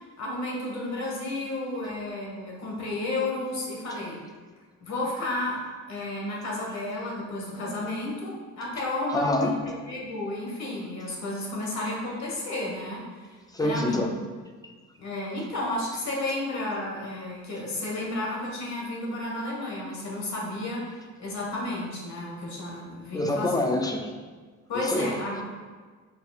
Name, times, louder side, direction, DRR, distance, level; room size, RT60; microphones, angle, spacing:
voice 1, 0.2-4.2 4.8-5.6 5.9-13.0 13.6-14.1 15.0-23.6 24.7-25.4, left 2 dB, 60° left, -2 dB, 1.3 m, -32 dB
voice 2, 9.1-9.6 13.5-14.1 23.1-24.1 24.7-25.1, left 1 dB, 15° left, 3 dB, 0.3 m, -26 dB
5.3 x 4.2 x 2.3 m, 1.5 s
cardioid pair, 130°, 31 cm